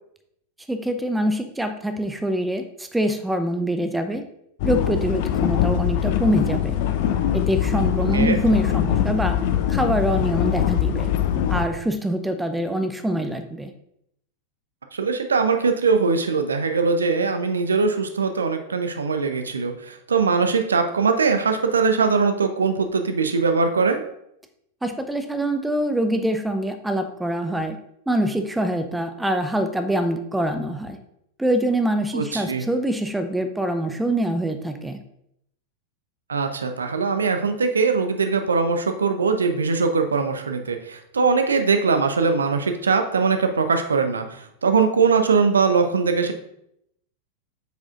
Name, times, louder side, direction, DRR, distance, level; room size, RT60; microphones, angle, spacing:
voice 1, 0.7-4.2 4.6-6.8 7.3-9.4 9.7-11.1 11.5-13.7 24.8-27.8 28.1-31.0 31.4-35.0, right 1 dB, 5° right, 7 dB, 0.6 m, -24 dB
sound 1, 4.6-11.7, left 10 dB, 50° left, 0.5 m, -22 dB
voice 2, 14.9-24.0 32.1-32.6 36.3-46.3, right 5 dB, 70° right, 7 dB, 0.6 m, -21 dB
7.9 x 4.8 x 2.5 m, 0.76 s
figure-of-eight pair, 90°, 0 cm